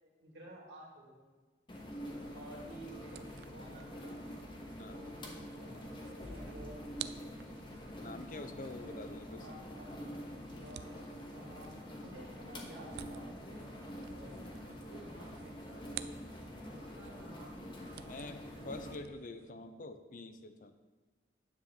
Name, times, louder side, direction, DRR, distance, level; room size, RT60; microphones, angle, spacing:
voice 1, 0.0-1.3 2.3-4.2 4.8-6.8 8.0-9.0 9.3-11.0 11.3-11.7 12.0-13.7 14.1-14.5 14.8-16.1 16.7-19.5, right 1 dB, 85° right, -3 dB, 2.4 m, -53 dB
sound 1, 1.7-19.0, equal, 25° left, 1.0 m, -46 dB
sound 2, 3.1-16.7 17.0-19.5, right 11 dB, 65° right, 0.3 m, -53 dB
voice 2, 4.8-5.1 8.0-9.5 18.1-20.7, left 2 dB, 45° left, 9 dB, 0.6 m, -46 dB
9.7 x 3.7 x 7.2 m, 1.3 s
head